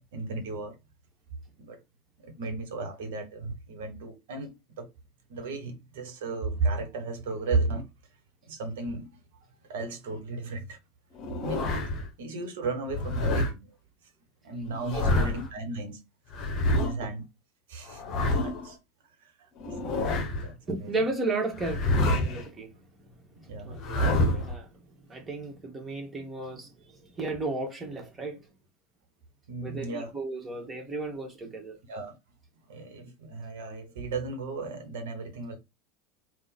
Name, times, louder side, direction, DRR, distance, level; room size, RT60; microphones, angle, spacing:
voice 1, 0.1-0.8 1.6-1.8 2.2-4.9 5.3-7.8 8.5-9.2 9.7-10.8 11.4-11.7 12.2-13.7 14.4-16.0 16.7-17.3 17.7-18.8 19.2-19.5 19.8-20.9 23.5-23.8 29.5-30.1 31.9-32.1 32.7-35.6, right 3 dB, 65° right, 1.2 m, -34 dB
sound 1, 11.2-12.1 12.9-13.5 14.7-15.5 16.3-16.9 17.9-18.7 19.6-20.5 21.6-22.5 23.7-24.6, left 2 dB, 45° left, 0.9 m, -27 dB
voice 2, 14.9-15.3 20.7-22.7 23.6-24.7 25.1-28.4 29.6-31.8, right 2 dB, 20° right, 1.6 m, -34 dB
3.7 x 2.4 x 4.2 m
figure-of-eight pair, 75°, 0 cm